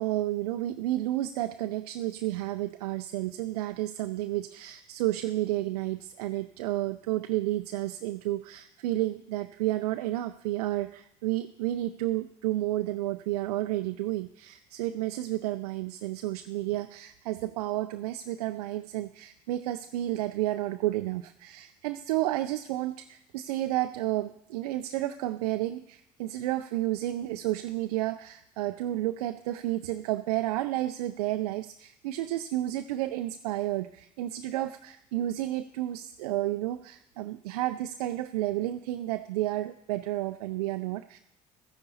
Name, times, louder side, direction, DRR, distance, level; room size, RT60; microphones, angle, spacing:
voice 1, 0.0-41.2, right 15 dB, 85° right, 9 dB, 0.4 m, -31 dB
13.0 x 9.9 x 4.1 m, 0.76 s
hypercardioid pair, 55°, 19 cm